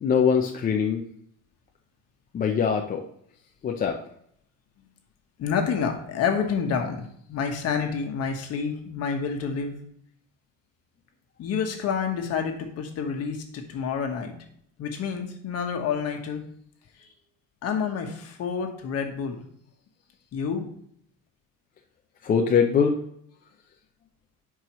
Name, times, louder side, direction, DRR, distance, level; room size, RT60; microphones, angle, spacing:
voice 1, 0.0-1.0 2.3-3.1 3.6-4.0 22.2-23.0, left 6 dB, 25° left, 2 dB, 0.5 m, -22 dB
voice 2, 5.4-9.8 11.4-14.3 14.8-16.4 17.6-19.4 20.3-20.7, left 6 dB, 45° left, 4 dB, 1.3 m, -28 dB
11.0 x 4.7 x 3.0 m, 0.68 s
cardioid pair, 155°, 34 cm